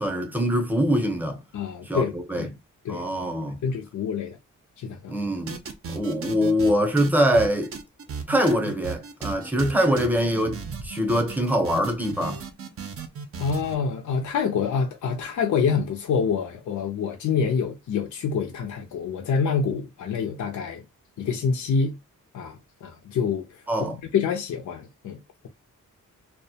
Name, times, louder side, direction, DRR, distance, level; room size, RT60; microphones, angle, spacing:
voice 1, 0.0-1.4 1.9-2.5 2.9-3.6 5.1-5.6 5.9-7.7 8.3-12.4 23.7-24.0, equal, 5° right, 0.7 m, -23 dB
voice 2, 1.5-2.1 2.4-2.5 2.8-3.3 3.6-4.4 4.8-5.2 13.4-20.8 21.2-22.0 22.3-23.5 23.8-25.2, left 6 dB, 65° left, 0.5 m, -26 dB
sound 1, 5.5-6.7 7.0-13.8, right 5 dB, 45° right, 0.5 m, -36 dB
2.1 x 2.1 x 2.7 m
cardioid pair, 80°, 32 cm